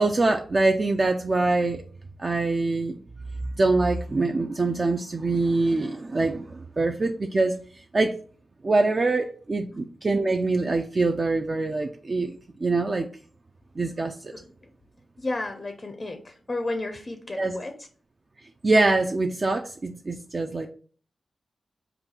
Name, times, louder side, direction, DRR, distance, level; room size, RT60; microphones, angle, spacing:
voice 1, 0.0-1.8 2.2-3.0 3.6-7.6 7.9-8.1 8.6-12.3 12.6-13.1 13.8-14.1 17.4-17.6 18.6-20.7, right 3 dB, 40° right, 4 dB, 0.3 m, -24 dB
voice 2, 15.2-17.7 20.6-20.7, left 2 dB, 30° left, 6 dB, 0.5 m, -32 dB
3.9 x 2.3 x 4.2 m, 0.44 s
cardioid pair, 80°, 0 cm